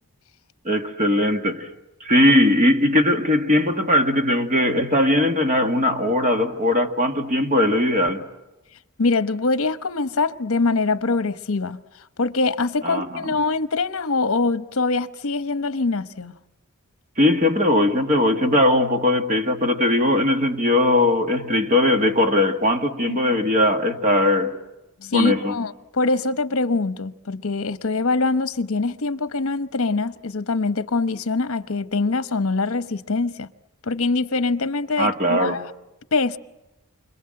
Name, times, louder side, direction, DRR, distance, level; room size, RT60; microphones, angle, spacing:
voice 1, 0.6-1.7 2.0-8.2 12.8-13.3 17.2-24.5 25.1-25.5 35.0-35.6, left 1 dB, 35° right, 1.7 m, -19 dB
voice 2, 9.0-11.8 12.2-16.4 23.1-23.4 25.0-33.5 33.8-35.7 36.1-36.4, left 3 dB, 65° left, 1.0 m, -23 dB
29.0 x 25.5 x 7.7 m
head